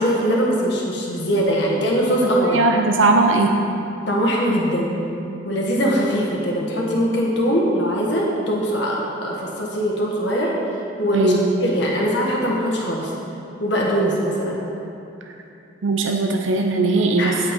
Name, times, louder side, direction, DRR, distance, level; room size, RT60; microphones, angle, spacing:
voice 1, 0.0-2.6 4.1-4.9 5.4-10.5 11.0-11.3 11.6-13.1 13.6-14.6 17.2-17.3, equal, 65° left, -3 dB, 1.5 m, -21 dB
voice 2, 2.4-3.6 11.1-11.5 15.8-17.5, right 3 dB, 85° right, 3 dB, 0.7 m, -19 dB
9.0 x 8.3 x 5.2 m, 2.7 s
head